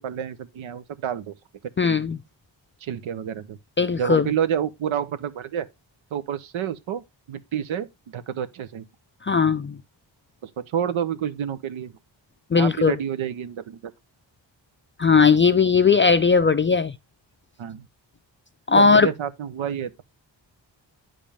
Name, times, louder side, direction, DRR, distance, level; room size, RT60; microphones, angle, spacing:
voice 1, 0.0-1.3 1.9-2.0 2.8-3.6 4.0-5.7 6.1-8.8 10.4-11.9 12.5-13.8 17.6-17.9 18.7-20.0, right 9 dB, 90° right, 0.8 m, -29 dB
voice 2, 1.8-2.2 3.8-4.3 9.2-9.8 12.5-13.0 15.0-16.9 18.7-19.1, left 5 dB, 25° left, 0.4 m, -18 dB
8.9 x 5.2 x 3.4 m
cardioid pair, 65°, 46 cm